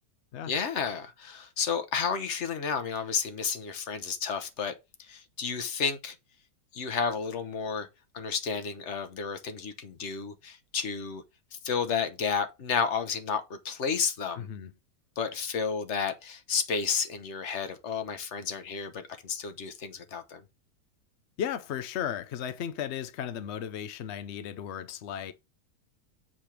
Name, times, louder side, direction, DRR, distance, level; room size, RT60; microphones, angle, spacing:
voice 1, 0.5-4.7 5.0-6.1 6.7-7.9 8.1-11.2 11.6-14.5 15.2-20.4, left 6 dB, 50° left, 1.1 m, -31 dB
voice 2, 14.4-14.7 21.4-25.3, left 9 dB, 75° left, 0.6 m, -35 dB
7.5 x 3.4 x 5.9 m
omnidirectional pair, 1.8 m